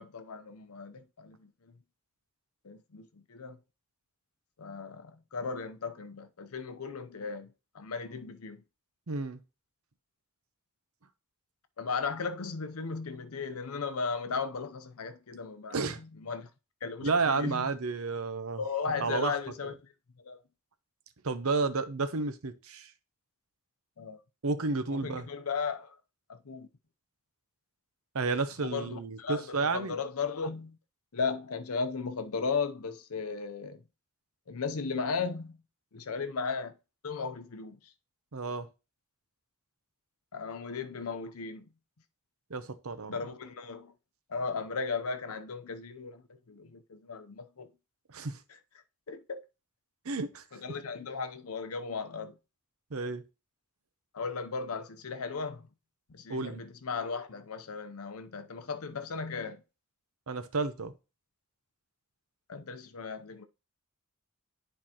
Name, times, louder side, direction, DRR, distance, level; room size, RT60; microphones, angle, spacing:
voice 1, 0.0-1.7 2.6-3.6 4.6-8.6 11.8-16.5 16.8-17.7 18.5-19.7 20.2-20.4 24.0-24.2 24.9-26.0 26.3-26.7 28.6-30.8 31.1-33.8 34.5-35.6 35.9-36.7 37.0-37.8 40.3-41.7 43.1-43.9 44.3-47.7 49.1-49.4 50.5-52.4 54.1-55.7 56.1-59.6 62.5-63.5, left 5 dB, 75° left, 0.7 m, -36 dB
voice 2, 9.1-9.4 15.7-16.0 17.0-18.6 19.0-19.4 21.2-22.9 24.4-25.3 28.1-30.0 38.3-38.7 42.5-43.2 48.1-48.4 50.0-50.4 52.9-53.2 56.3-56.6 60.3-60.9, right 4 dB, 70° right, 0.8 m, -31 dB
9.9 x 4.5 x 2.9 m
head